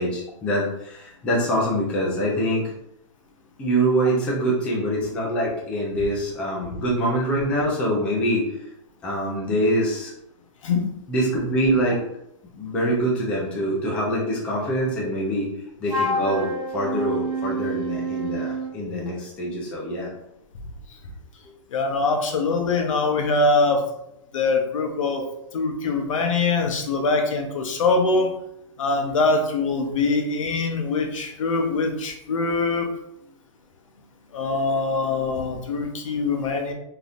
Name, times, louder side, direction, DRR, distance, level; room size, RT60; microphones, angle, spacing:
voice 1, 0.0-2.6 3.6-8.4 9.0-10.1 11.1-12.0 12.6-15.5 15.8-18.5 18.7-20.1 25.2-25.3, right 1 dB, 5° left, -4 dB, 0.3 m, -24 dB
Wind instrument woodwind instrument, 15.9-18.7, right 1 dB, 80° right, 1.2 m, -27 dB
voice 2, 21.7-23.9 24.3-25.2 25.5-28.3 28.8-32.9 34.3-36.7, left 3 dB, 80° left, 4 dB, 0.7 m, -23 dB
3.4 x 2.7 x 2.4 m, 0.78 s
hypercardioid pair, 170°, 17 cm